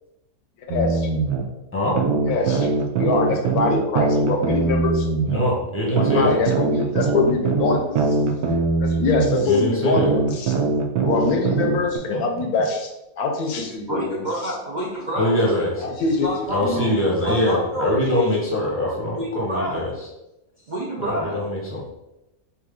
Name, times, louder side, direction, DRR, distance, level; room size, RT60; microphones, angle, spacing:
voice 1, 0.7-1.1 2.3-5.1 6.0-8.2 8.8-10.6 11.0-12.9 13.2-14.2 15.8-16.3 16.6-16.9 17.3-17.4, left 3 dB, 80° left, 3 dB, 1.2 m, -24 dB
sound 1, 0.7-1.4 2.0-5.4 6.0-9.4 10.0-12.0, right 4 dB, 85° right, 1.1 m, -22 dB
voice 2, 5.3-6.4 9.4-10.1 12.1-12.2 15.1-15.9 16.5-19.9 21.0-21.9, left 1 dB, 10° left, -4 dB, 0.9 m, -23 dB
voice 3, 13.9-15.6 16.2-16.9 17.2-18.3 19.2-20.0 20.6-21.5, right 1 dB, 50° right, -5 dB, 0.5 m, -28 dB
3.7 x 2.9 x 3.7 m, 0.93 s
omnidirectional pair, 1.6 m